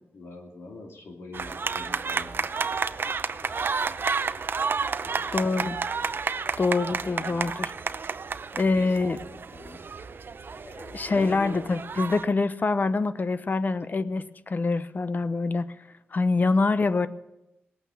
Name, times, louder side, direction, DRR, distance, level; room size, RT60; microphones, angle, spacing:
voice 1, 0.1-2.9 3.4-4.0 5.0-5.6 6.2-6.3 7.0-7.5 8.6-10.1 11.1-11.6, left 3 dB, 85° left, 1 dB, 2.8 m, -45 dB
sound 1, 1.3-12.2, right 5 dB, 55° right, 0.7 m, -31 dB
voice 2, 5.3-5.8 6.6-7.7 8.5-9.2 10.6-15.7 16.1-17.1, left 3 dB, 45° left, 13 dB, 0.9 m, -25 dB
19.5 x 9.0 x 7.2 m, 0.89 s
cardioid pair, 70°, 4 cm